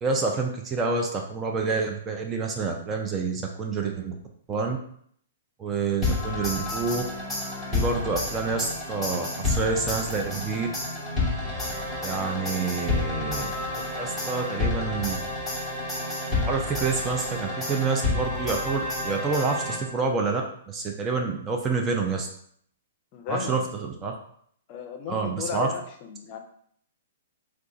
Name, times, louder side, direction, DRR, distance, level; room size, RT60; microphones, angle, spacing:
voice 1, 0.0-4.1 4.5-4.8 5.6-7.0 7.7-10.7 12.0-13.5 14.0-15.2 16.5-22.3 23.3-24.1 25.1-25.7, right 4 dB, 20° right, 2 dB, 0.4 m, -28 dB
sound 1, 6.0-20.1, left 2 dB, ahead, 1.0 m, -30 dB
voice 2, 12.1-12.5 23.1-23.6 24.7-26.4, left 6 dB, 40° left, 4 dB, 0.6 m, -35 dB
2.4 x 2.3 x 3.8 m, 0.64 s
hypercardioid pair, 130°, 0 cm